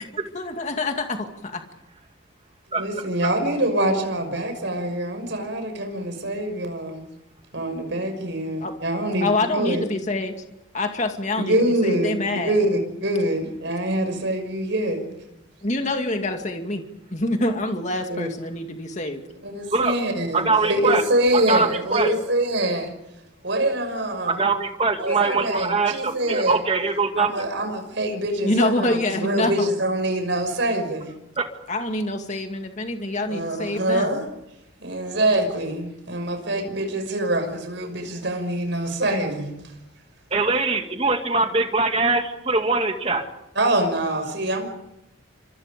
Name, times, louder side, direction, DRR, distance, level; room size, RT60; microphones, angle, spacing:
voice 1, 0.3-1.6 8.6-8.7 9.2-10.3 10.7-12.6 15.6-16.8 17.1-19.2 28.4-29.7 31.7-34.1, left 2 dB, 35° left, 5 dB, 2.3 m, -26 dB
voice 2, 2.8-7.0 7.5-9.8 11.4-15.0 18.1-18.3 19.4-22.9 23.4-24.4 25.0-26.6 27.2-31.1 33.3-34.2 34.8-39.5 43.6-44.6, right 1 dB, 60° right, 5 dB, 6.2 m, -24 dB
voice 3, 20.3-21.0 21.3-22.1 24.3-27.3 31.4-31.5 40.3-43.2, right 3 dB, 30° right, 5 dB, 2.3 m, -22 dB
29.5 x 26.0 x 5.3 m, 0.84 s
head